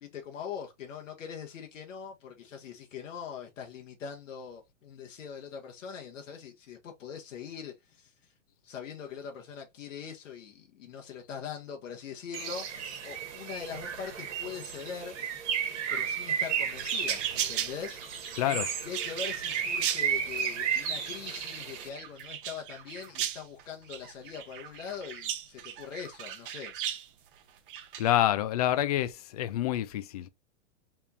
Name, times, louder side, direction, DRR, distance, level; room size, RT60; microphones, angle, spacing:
voice 1, 0.0-8.3 8.6-15.2 15.9-18.0 18.8-26.7, left 7 dB, 80° left, 1.3 m, -42 dB
Bird, 12.3-21.9, right 7 dB, 65° right, 1.7 m, -34 dB
sound 1, 16.7-27.1 27.7-28.2, right 10 dB, 45° right, 0.8 m, -37 dB
voice 2, 18.4-18.7 28.0-30.3, left 12 dB, 35° left, 0.4 m, -27 dB
4.7 x 3.6 x 2.6 m
hypercardioid pair, 160°, 38 cm